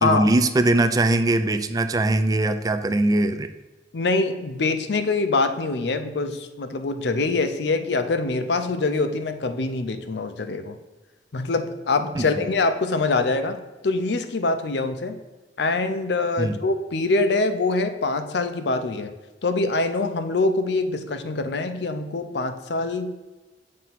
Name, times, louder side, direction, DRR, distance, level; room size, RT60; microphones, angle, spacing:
voice 1, 0.0-3.5 12.2-12.3 16.4-16.5, right 2 dB, 20° right, 9 dB, 0.3 m, -21 dB
voice 2, 3.9-10.8 11.3-13.6 13.8-15.2 15.6-19.1 19.4-23.1, left 3 dB, 70° left, 9 dB, 0.6 m, -24 dB
7.4 x 2.7 x 5.8 m, 1.2 s
head